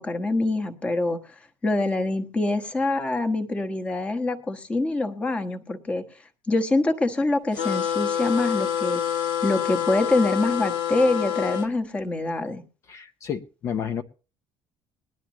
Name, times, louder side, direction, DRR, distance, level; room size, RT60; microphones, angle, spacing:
voice 1, 0.0-1.3 1.6-6.1 6.5-9.0 9.4-12.6, left 2 dB, 15° left, 7 dB, 1.3 m, -25 dB
sound 1, 7.5-11.7, left 9 dB, 55° left, 1.6 m, -27 dB
voice 2, 12.9-14.0, left 8 dB, 35° left, 9 dB, 0.8 m, -31 dB
20.0 x 12.0 x 3.0 m, 0.36 s
cardioid pair, 175°, 9 cm